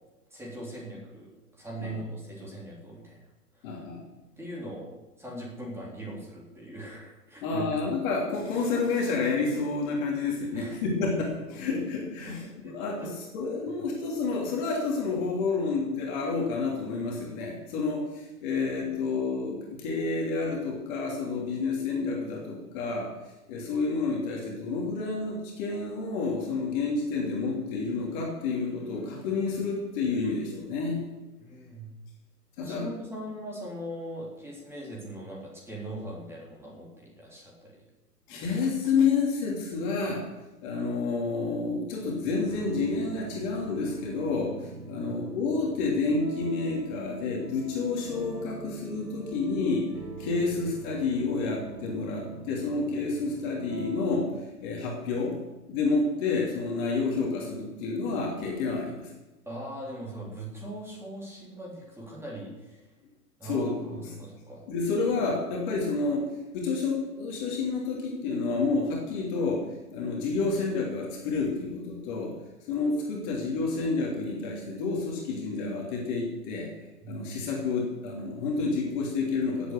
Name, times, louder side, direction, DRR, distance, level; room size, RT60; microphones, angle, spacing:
voice 1, 0.3-3.2 3.5-3.8 4.4-4.9 5.2-7.7 10.5-10.8 12.2-12.4 12.6-13.1 13.8-13.9 31.4-31.9 32.6-37.8 38.3-38.4 45.0-45.2 59.5-62.9 63.4-64.6 77.0-77.5, right 1 dB, 5° right, -4 dB, 3.9 m, -40 dB
voice 2, 3.6-4.0 7.4-12.4 12.7-23.1 23.5-31.0 32.6-32.9 38.3-40.2 40.6-49.9 50.2-54.3 54.6-55.4 55.7-59.1 63.4-64.0 64.7-66.2 66.5-72.3 72.7-76.7 77.1-79.7, left 4 dB, 30° left, -1 dB, 3.0 m, -29 dB
sound 1, 42.5-54.3, right 4 dB, 75° right, 1.9 m, -43 dB
17.5 x 8.5 x 6.9 m, 1.1 s
figure-of-eight pair, 120°, 48 cm